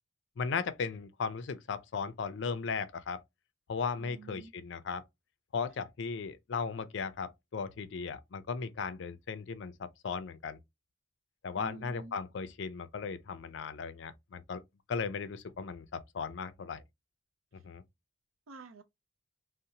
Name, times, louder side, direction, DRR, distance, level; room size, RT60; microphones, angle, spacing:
voice 1, 0.4-3.2 3.7-5.0 5.5-10.6 11.4-14.6 14.9-16.8 17.5-17.8, left 5 dB, 60° left, 0.4 m, -37 dB
voice 2, 4.0-4.5 11.5-12.2 18.5-18.8, right 4 dB, 80° right, 0.5 m, -49 dB
2.7 x 2.0 x 2.7 m
head